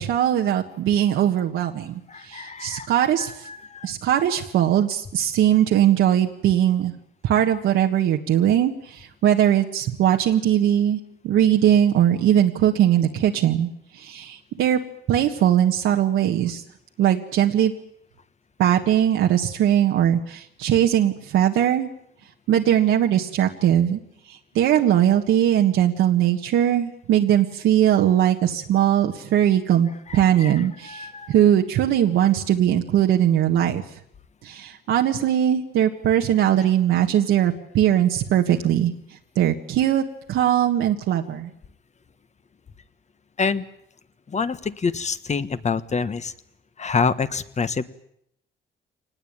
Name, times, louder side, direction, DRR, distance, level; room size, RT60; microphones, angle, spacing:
voice 1, 0.0-3.5 3.8-6.9 7.2-14.8 15.1-16.6 17.0-17.7 18.6-21.9 22.5-24.0 24.3-33.8 34.4-41.5, right 10 dB, 85° right, 2 dB, 1.6 m, -20 dB
voice 2, 2.1-2.9 3.2-3.9 30.1-31.3 43.4-43.6 44.3-46.3 46.8-47.8, left 5 dB, 35° left, 13 dB, 1.4 m, -27 dB
24.5 x 19.5 x 9.0 m, 0.75 s
cardioid pair, 90°, 20 cm